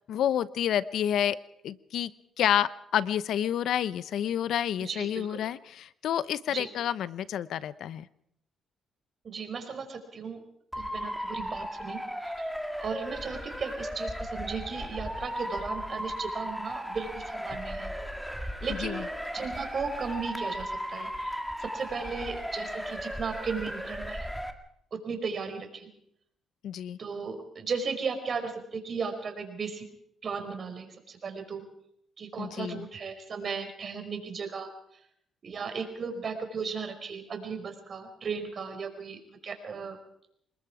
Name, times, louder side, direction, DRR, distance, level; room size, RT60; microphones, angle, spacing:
voice 1, 0.1-1.4 1.6-2.1 2.4-8.1 18.7-19.0 26.6-27.0 32.4-32.9, left 10 dB, 75° left, 16 dB, 0.8 m, -29 dB
voice 2, 4.8-5.4 6.5-6.7 9.2-10.4 10.7-12.5 12.8-17.9 18.4-19.1 19.3-24.3 24.9-25.9 27.0-29.9 30.2-31.6 32.2-34.7 35.4-40.0, right 5 dB, 50° right, 5 dB, 5.3 m, -36 dB
Motor vehicle (road) / Siren, 10.7-24.5, equal, ahead, 2.2 m, -36 dB
27.5 x 20.5 x 5.0 m, 0.72 s
cardioid pair, 90°, 0 cm